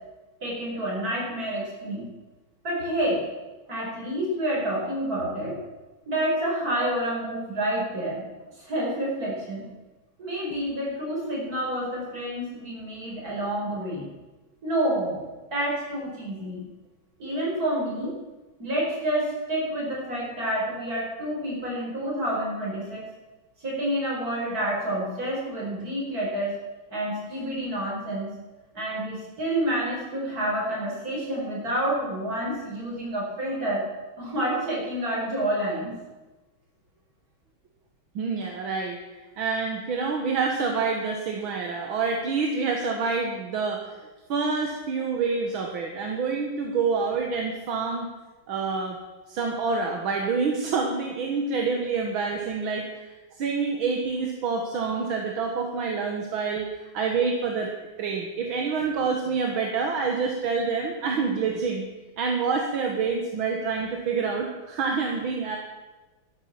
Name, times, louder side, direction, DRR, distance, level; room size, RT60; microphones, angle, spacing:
voice 1, 0.4-2.1 2.6-3.2 3.7-5.6 6.1-8.2 8.6-9.7 10.2-14.1 14.6-15.2 15.5-16.6 17.2-18.2 18.6-23.1 23.6-26.6 26.9-28.3 28.7-33.9 34.2-36.0, right 1 dB, 45° right, -4 dB, 5.6 m, -28 dB
voice 2, 38.2-39.0 39.4-44.0 44.3-48.1 48.5-49.0 49.3-56.7 56.9-57.7 58.0-61.9 62.2-65.6, right 5 dB, 75° right, 2 dB, 2.1 m, -27 dB
12.5 x 11.0 x 7.4 m, 1.2 s
omnidirectional pair, 2.3 m